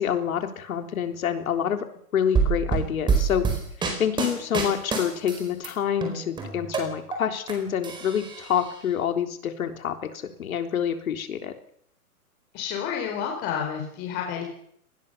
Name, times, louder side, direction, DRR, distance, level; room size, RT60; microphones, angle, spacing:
voice 1, 0.0-1.9 2.1-3.5 4.0-11.5, left 8 dB, 65° left, 6 dB, 3.7 m, -27 dB
sound 1, 2.3-5.7 6.0-7.5 7.8-8.7, right 5 dB, 10° right, 4.5 m, -26 dB
voice 2, 12.5-14.4, left 8 dB, 25° left, 1 dB, 4.2 m, -30 dB
25.0 x 20.0 x 6.9 m, 0.69 s
hypercardioid pair, 160°, 45 cm